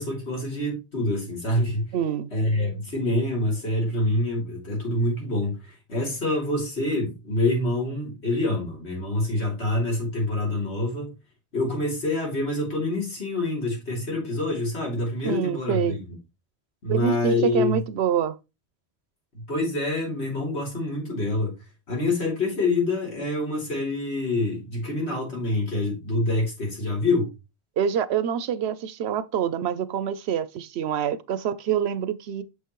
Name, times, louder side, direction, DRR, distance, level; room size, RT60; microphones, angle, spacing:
voice 1, 0.0-2.0 2.3-11.1 11.5-16.0 16.8-17.8 19.3-21.5 21.9-27.3, left 2 dB, 85° left, 3.3 m, -26 dB
voice 2, 1.9-2.3 15.2-16.0 16.9-18.4 27.8-32.4, right 8 dB, 80° right, 0.9 m, -26 dB
6.9 x 5.6 x 3.1 m
omnidirectional pair, 1.1 m